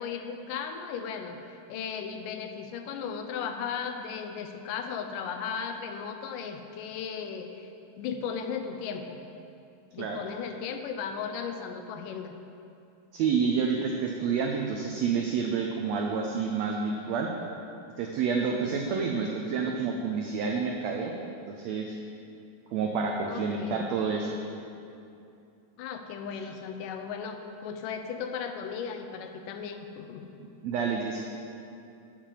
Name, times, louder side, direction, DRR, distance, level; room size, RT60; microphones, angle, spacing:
voice 1, 0.0-7.7 8.0-9.2 9.9-12.3 23.3-23.9 25.8-30.3, left 6 dB, 80° left, 6 dB, 2.2 m, -36 dB
voice 2, 13.1-17.3 18.0-21.1 21.5-22.0 22.7-24.4 30.4-31.3, right 5 dB, 90° right, 1 dB, 1.5 m, -29 dB
7.4 x 6.6 x 7.3 m, 2.7 s
omnidirectional pair, 3.8 m